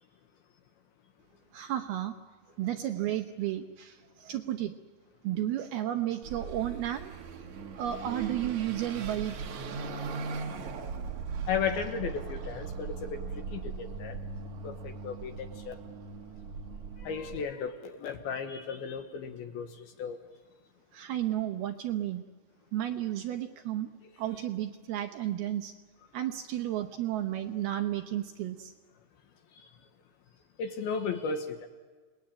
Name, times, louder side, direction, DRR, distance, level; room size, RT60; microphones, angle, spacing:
voice 1, 1.5-2.1 2.6-4.7 5.2-7.1 7.7-9.4 20.9-22.2 22.7-23.9 24.2-25.7 26.1-28.7, right 12 dB, 75° right, 6 dB, 2.4 m, -32 dB
Car passing by / Accelerating revving vroom, 6.2-17.5, right 5 dB, 55° right, 2.3 m, -39 dB
voice 2, 11.5-14.2 14.6-15.8 17.0-20.2 24.0-24.1 29.6-29.7 30.6-31.7, left 6 dB, 70° left, 6 dB, 2.6 m, -35 dB
28.5 x 20.5 x 8.8 m, 1.4 s
omnidirectional pair, 5.3 m